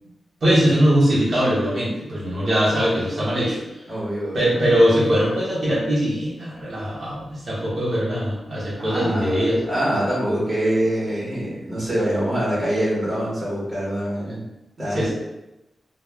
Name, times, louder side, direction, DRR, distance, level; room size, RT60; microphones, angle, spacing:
voice 1, 0.4-3.6 4.3-9.6 14.3-14.4 14.9-15.1, equal, 60° right, -7 dB, 0.9 m, -21 dB
voice 2, 3.9-4.5 8.8-14.4 14.8-15.1, right 1 dB, 15° right, -8 dB, 1.0 m, -25 dB
2.3 x 2.0 x 3.4 m, 0.97 s
wide cardioid pair, 115°, 0 cm